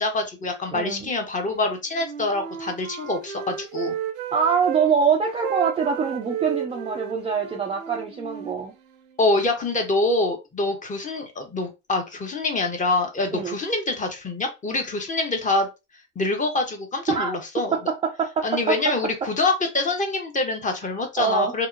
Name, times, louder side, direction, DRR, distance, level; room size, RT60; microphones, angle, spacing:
voice 1, 0.0-3.9 9.2-15.7 16.2-17.8 18.4-21.7, left 2 dB, 20° left, 0.7 m, -25 dB
voice 2, 0.7-1.1 4.3-8.7 13.3-13.6 17.1-17.4 17.7-18.8 21.2-21.7, right 6 dB, 15° right, 0.4 m, -24 dB
Wind instrument woodwind instrument, 1.9-4.9 5.4-9.2, right 9 dB, 75° right, 0.7 m, -33 dB
2.8 x 2.1 x 2.4 m
hypercardioid pair, 75°, 39 cm